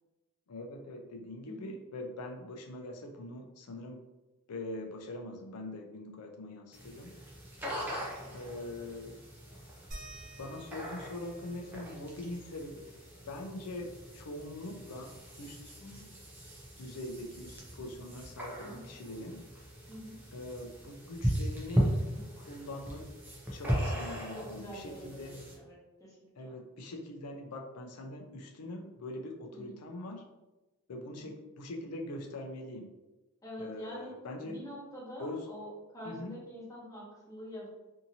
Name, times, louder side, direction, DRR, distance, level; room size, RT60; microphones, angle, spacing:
voice 1, 0.5-4.0 4.5-7.2 8.3-9.2 10.4-13.0 13.3-15.1 15.4-15.7 16.8-19.4 20.3-22.0 22.3-23.1 23.5-25.4 26.4-30.2 30.9-32.9 33.6-34.6 35.2-35.5 36.0-36.4, left 1 dB, 90° left, 2 dB, 0.5 m, -43 dB
sound 1, 6.7-25.5, equal, 10° right, 0.5 m, -38 dB
voice 2, 7.8-8.3 15.8-16.0 18.6-18.8 19.9-20.2 22.1-22.2 24.3-25.3 25.6-25.7 26.0-26.5 29.6-29.7 33.4-34.1 34.4-37.7, equal, 15° left, -7 dB, 0.9 m, -46 dB
sound 2, 9.9-15.0 15.4-15.5 15.8-17.6 18.8-18.9 19.7-19.8, right 1 dB, 40° right, 1.0 m, -54 dB
2.7 x 2.7 x 2.7 m, 1.1 s
head